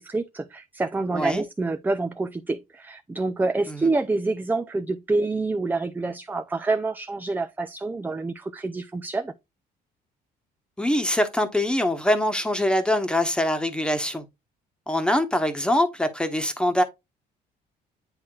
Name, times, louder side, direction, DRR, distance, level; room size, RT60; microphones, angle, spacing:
voice 1, 0.0-9.3, right 3 dB, 10° right, 0.5 m, -27 dB
voice 2, 1.1-1.4 3.7-3.9 10.8-14.2 14.9-16.8, left 1 dB, 5° left, 1.3 m, -23 dB
9.5 x 4.1 x 2.4 m
cardioid pair, 110°, 17 cm